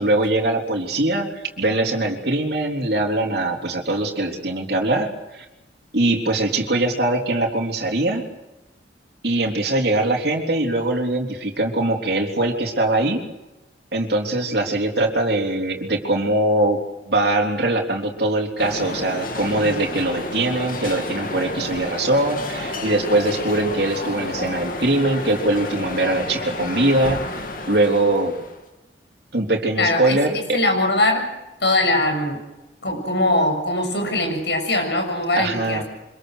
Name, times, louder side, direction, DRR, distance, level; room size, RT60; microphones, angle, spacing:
voice 1, 0.0-5.5 5.9-8.2 9.2-13.2 13.9-16.8 17.1-27.2 27.7-28.4 29.3-30.6 35.4-35.8, right 2 dB, 60° right, 1 dB, 3.7 m, -22 dB
sound 1, 18.6-28.6, left 2 dB, 50° left, 2.4 m, -30 dB
voice 2, 29.8-30.2 30.5-31.2 31.6-32.4 32.8-35.8, left 2 dB, 70° left, 4 dB, 7.2 m, -21 dB
25.5 x 22.0 x 6.5 m, 1.0 s
head